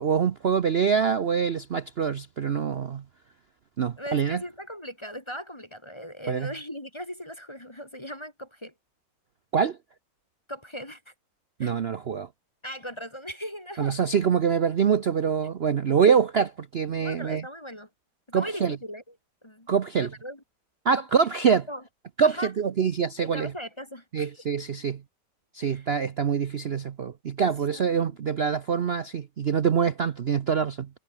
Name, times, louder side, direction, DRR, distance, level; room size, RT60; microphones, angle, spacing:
voice 1, 0.0-3.0 3.8-4.4 6.3-6.5 9.5-9.8 11.6-12.3 13.8-17.4 18.3-18.8 19.7-20.1 20.8-21.6 22.2-23.5 24.1-25.0 25.5-30.9, right 7 dB, 55° right, 0.7 m, -25 dB
voice 2, 4.0-8.7 10.5-11.1 11.6-11.8 12.6-14.0 16.0-16.2 17.0-17.9 18.3-19.0 19.4-19.7 20.0-20.4 20.9-21.0 21.7-21.8 22.2-22.5 23.2-24.3 25.6-25.9 27.7-28.4, equal, 15° left, 1.9 m, -39 dB
omnidirectional pair, 1.9 m